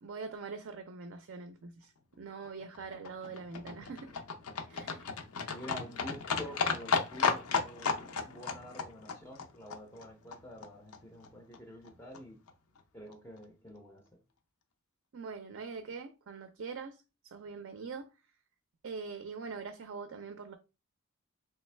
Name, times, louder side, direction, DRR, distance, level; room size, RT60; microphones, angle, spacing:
voice 1, 0.0-4.1 4.7-5.1 15.1-18.1 18.8-20.5, right 4 dB, 60° right, 0.4 m, -43 dB
Livestock farm animals working animals, 2.4-10.7 10.9-11.0 11.2-11.3 11.5-11.6 11.8-11.9 12.1-12.2 12.5-12.6 12.8-12.9 13.1-13.2, left 5 dB, 85° left, 0.6 m, -34 dB
voice 2, 5.5-12.4 12.9-14.2, equal, 10° left, 0.5 m, -48 dB
3.4 x 3.1 x 3.2 m
head